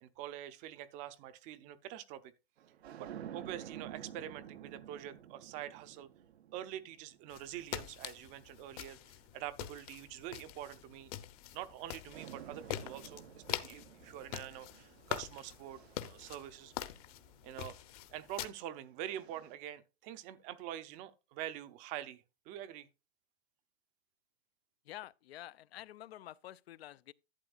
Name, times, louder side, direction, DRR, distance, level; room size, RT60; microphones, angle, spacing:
voice 1, 0.0-2.2 3.0-6.1 6.5-11.1 11.5-16.7 17.4-17.8 18.1-22.9, right 12 dB, 25° right, 0.5 m, -45 dB
sound 1, 2.6-9.1 9.9-11.8 12.1-17.4 18.4-19.6, right 10 dB, 90° right, 0.9 m, -52 dB
sound 2, 7.3-18.5, left 13 dB, 40° left, 0.8 m, -45 dB
voice 2, 24.8-27.1, left 13 dB, 75° left, 0.6 m, -49 dB
11.5 x 8.7 x 2.5 m
hypercardioid pair, 150°, 31 cm